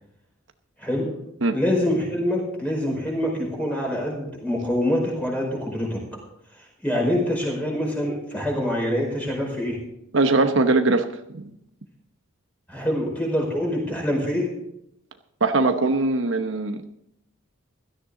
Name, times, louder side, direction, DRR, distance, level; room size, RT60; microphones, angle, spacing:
voice 1, 1.5-6.0 6.8-9.8 12.7-14.5, left 1 dB, 5° left, -1 dB, 4.9 m, -25 dB
voice 2, 10.1-11.1 11.3-11.5 15.4-16.8, right 3 dB, 60° right, 7 dB, 1.0 m, -21 dB
16.5 x 13.5 x 3.9 m, 0.78 s
head